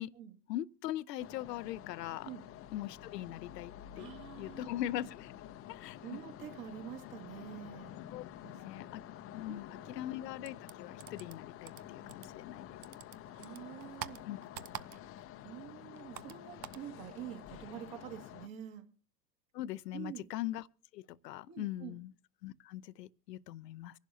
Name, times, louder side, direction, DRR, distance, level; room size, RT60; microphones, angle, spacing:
voice 1, 0.5-2.3 2.7-4.1 4.4-5.3 5.7-6.0 8.1-8.2 8.6-9.0 9.3-12.7 14.3-14.4 19.5-20.6 20.9-22.1 22.4-24.0, left 13 dB, 75° left, 0.7 m, -41 dB
sound 1, 1.2-18.5, left 11 dB, 30° left, 0.6 m, -49 dB
voice 2, 3.9-4.7 6.0-8.0 8.4-9.0 9.5-10.0 13.3-14.2 15.4-18.9 19.9-20.3 21.5-21.9, right 11 dB, 55° right, 2.3 m, -47 dB
sound 2, 10.4-12.6 12.8-15.3 15.6-16.9, right 10 dB, 85° right, 0.7 m, -47 dB
24.5 x 11.5 x 2.8 m
hypercardioid pair, 90°, 50 cm